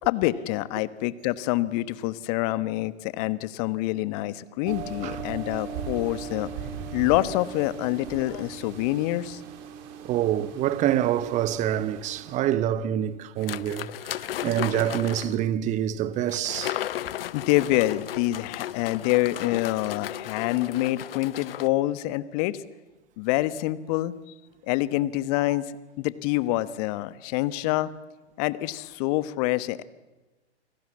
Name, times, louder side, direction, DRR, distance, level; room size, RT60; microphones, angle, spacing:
voice 1, 0.0-6.5 6.9-9.4 17.3-22.6 23.2-24.1 24.6-25.7 26.0-27.9 28.4-29.8, left 17 dB, 35° left, 1.2 m, -26 dB
sound 1, 4.6-12.4, right 6 dB, 40° right, 3.6 m, -38 dB
voice 2, 10.0-16.8, right 11 dB, 20° right, 1.0 m, -26 dB
sound 2, 13.4-15.4 16.3-21.7, left 12 dB, 55° left, 0.8 m, -35 dB
28.5 x 20.0 x 8.5 m
figure-of-eight pair, 120°, 35 cm